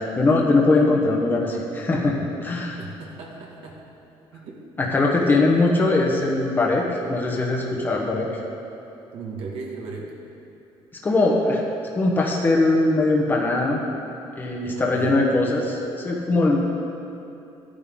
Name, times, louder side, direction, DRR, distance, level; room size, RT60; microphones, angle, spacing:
voice 1, 0.0-2.2 2.4-2.8 4.8-8.3 11.0-11.6 11.9-13.8 14.4-16.6, left 2 dB, 20° left, -2 dB, 1.1 m, -21 dB
voice 2, 2.8-3.8 4.3-4.6 5.3-5.4 9.1-10.1 14.7-15.2, right 4 dB, 70° right, -1 dB, 1.4 m, -36 dB
13.0 x 10.0 x 3.8 m, 2.8 s
cardioid pair, 150°, 10 cm